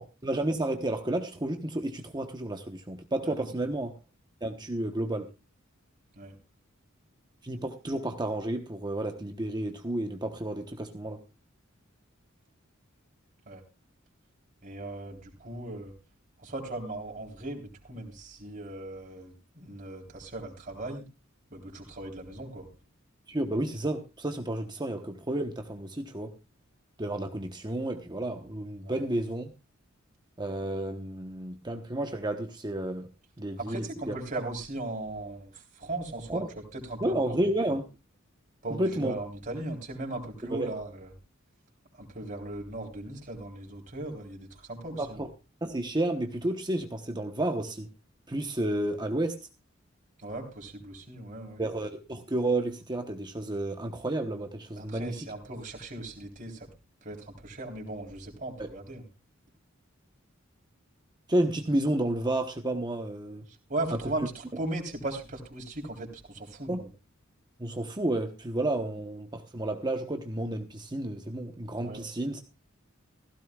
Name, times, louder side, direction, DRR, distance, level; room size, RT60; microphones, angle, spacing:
voice 1, 0.0-3.9 4.4-5.3 7.4-11.2 23.3-26.3 27.0-29.5 30.4-33.1 33.4-34.1 36.3-36.5 37.0-37.8 38.7-39.1 40.5-40.7 45.0-45.3 45.6-47.9 48.3-49.4 51.6-55.3 58.6-58.7 61.3-63.4 66.7-66.9 67.6-72.4, right 1 dB, 20° right, 5 dB, 1.1 m, -31 dB
voice 2, 14.6-15.9 16.4-21.0 21.5-22.7 28.8-29.0 33.6-36.4 36.7-37.4 38.6-41.1 42.0-45.2 50.2-51.6 54.8-56.7 57.0-59.0 63.7-66.8 71.8-72.0, right 2 dB, 40° right, 0 dB, 3.8 m, -38 dB
16.0 x 16.0 x 2.4 m, 0.28 s
head